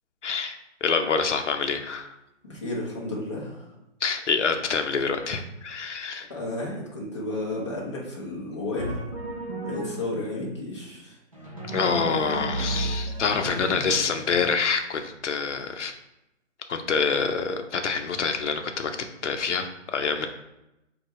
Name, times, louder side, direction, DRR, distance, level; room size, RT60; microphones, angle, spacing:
voice 1, 0.2-2.1 4.0-6.3 11.7-15.9 16.7-18.9 19.2-20.3, left 5 dB, 75° left, 6 dB, 0.7 m, -26 dB
voice 2, 2.4-3.6 6.3-9.0 9.6-11.2 13.7-13.9, left 2 dB, 25° left, -5 dB, 0.8 m, -32 dB
Drum, 8.8-10.2 11.3-14.4, right 2 dB, 30° right, 0.5 m, -33 dB
4.6 x 2.4 x 4.5 m, 0.90 s
hypercardioid pair, 180°, 36 cm